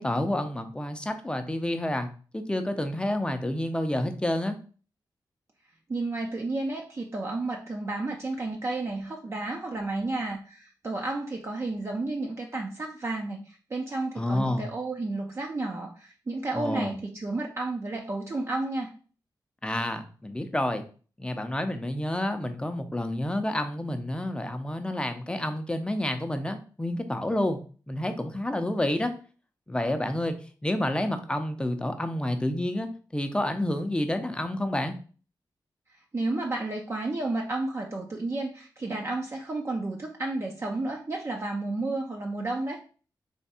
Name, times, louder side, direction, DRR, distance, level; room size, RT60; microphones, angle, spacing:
voice 1, 0.0-4.6 14.2-14.7 16.5-16.9 19.6-20.8 21.2-27.6 27.9-29.1 29.7-30.3 30.6-35.0, left 1 dB, 10° left, 7 dB, 0.6 m, -29 dB
voice 2, 5.9-18.9 36.1-42.8, right 2 dB, 35° right, 0 dB, 0.6 m, -32 dB
3.5 x 3.1 x 4.2 m, 0.39 s
wide cardioid pair, 95°, 8 cm